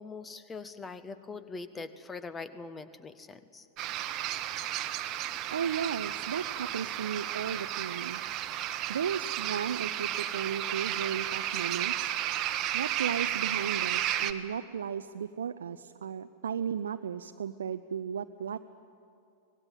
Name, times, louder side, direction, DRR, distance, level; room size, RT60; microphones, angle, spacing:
voice 1, 0.0-3.7, left 4 dB, 15° left, 13 dB, 1.3 m, -42 dB
sound 1, 3.8-14.3, right 12 dB, 35° right, 1.2 m, -33 dB
voice 2, 5.5-8.2 8.9-12.1 12.7-18.6, right 7 dB, 65° right, 9 dB, 0.6 m, -35 dB
24.5 x 19.5 x 9.2 m, 2.5 s
figure-of-eight pair, 90°, 0 cm